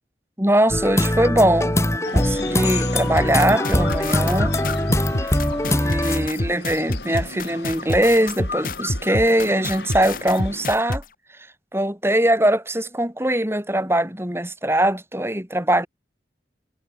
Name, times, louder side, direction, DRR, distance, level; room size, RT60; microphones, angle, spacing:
voice 1, 0.4-4.7 5.2-5.4 5.6-11.0 11.7-15.9, right 1 dB, 15° right, 4.2 m, -21 dB
sound 1, 0.7-6.3, left 1 dB, 15° left, 3.6 m, -22 dB
sound 2, 2.0-10.7, left 4 dB, 75° left, 3.4 m, -35 dB
sound 3, 3.1-11.0, left 1 dB, 50° left, 3.0 m, -27 dB
head